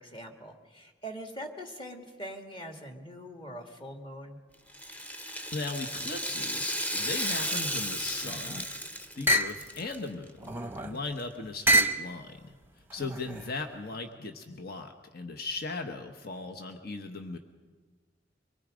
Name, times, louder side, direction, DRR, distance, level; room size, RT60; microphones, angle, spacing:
voice 1, 0.0-4.4, equal, 30° left, 3 dB, 2.2 m, -43 dB
Rattle (instrument), 4.7-10.0 10.3-10.4 11.2-11.3, equal, 10° left, 0.9 m, -34 dB
voice 2, 5.5-8.7 9.1-12.5 12.9-17.4, left 3 dB, 60° left, 5 dB, 1.2 m, -38 dB
sound 1, 8.1-8.7 9.3-9.6 10.4-11.0 11.7-12.1 12.9-13.5, right 1 dB, 10° right, 0.9 m, -27 dB
24.5 x 22.0 x 5.1 m, 1.4 s
head